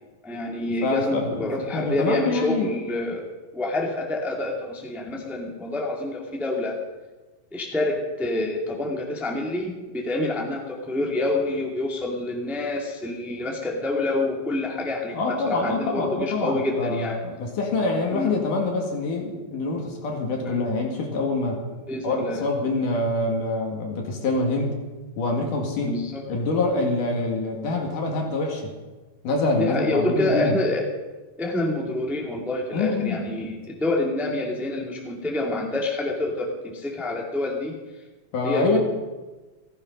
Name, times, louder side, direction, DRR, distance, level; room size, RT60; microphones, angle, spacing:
voice 1, 0.2-3.3 3.5-6.8 7.5-17.2 18.1-18.4 20.4-20.6 21.9-22.5 25.8-26.2 29.6-30.9 31.4-37.8 38.4-38.8, left 2 dB, ahead, -1 dB, 1.5 m, -27 dB
voice 2, 0.8-2.7 15.1-21.6 22.0-24.7 25.2-26.0 26.3-28.7 29.2-30.6 32.7-33.2 38.3-38.8, left 2 dB, 70° left, 1 dB, 3.7 m, -25 dB
15.5 x 15.5 x 5.4 m, 1.2 s
omnidirectional pair, 3.9 m